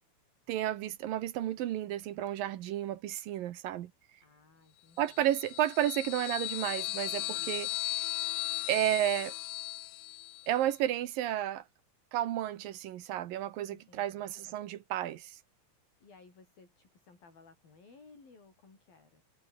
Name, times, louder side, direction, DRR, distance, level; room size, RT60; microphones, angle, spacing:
voice 1, 0.5-3.9 5.0-7.7 8.7-9.3 10.5-11.6 12.1-15.4, right 12 dB, 70° right, 2.8 m, -32 dB
voice 2, 4.2-5.2 7.2-7.8 13.7-14.4 16.0-19.2, left 4 dB, 65° left, 9.9 m, -59 dB
sound 1, 5.1-10.5, left 20 dB, 85° left, 2.6 m, -37 dB
omnidirectional pair, 4.4 m